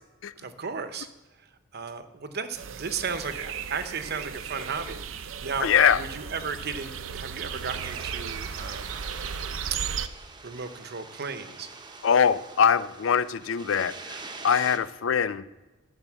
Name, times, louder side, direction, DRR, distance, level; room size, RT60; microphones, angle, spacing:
voice 1, 0.4-1.1 1.7-9.0 9.7-9.8 10.4-11.7, right 5 dB, 55° right, 10 dB, 0.8 m, -35 dB
sound 1, 2.6-10.1, right 7 dB, 80° right, 0.6 m, -36 dB
sound 2, 3.0-14.8, right 3 dB, 20° right, 0.8 m, -46 dB
voice 2, 5.6-6.0 12.0-13.9 14.4-15.4, left 7 dB, 70° left, 16 dB, 0.4 m, -22 dB
11.0 x 5.4 x 7.2 m, 1.2 s
head